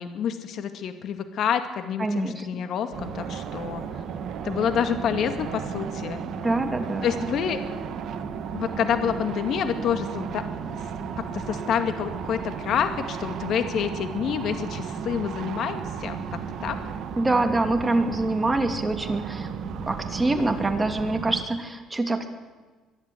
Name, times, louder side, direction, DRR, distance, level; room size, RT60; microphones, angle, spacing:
voice 1, 0.0-3.8 4.4-6.2 7.0-7.6 8.5-10.4 11.3-16.2 16.6-16.8, left 8 dB, 60° left, 7 dB, 2.2 m, -28 dB
voice 2, 2.0-2.5 6.4-7.1 17.2-19.5 19.8-22.3, right 2 dB, 15° right, 5 dB, 2.6 m, -25 dB
sound 1, 2.9-21.4, right 6 dB, 65° right, 1.7 m, -34 dB
24.0 x 11.5 x 9.6 m, 1.3 s
cardioid pair, 100°, 0 cm